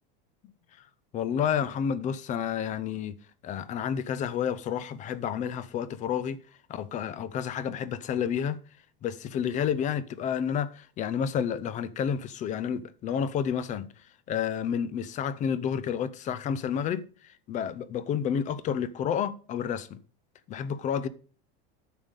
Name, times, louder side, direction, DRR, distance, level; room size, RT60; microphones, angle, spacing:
voice 1, 1.1-3.2 3.4-6.4 6.7-8.6 9.0-13.9 14.3-20.0 20.5-21.1, left 8 dB, 25° left, 0.5 m, -30 dB
9.2 x 6.5 x 5.2 m
supercardioid pair, 155°, 29 cm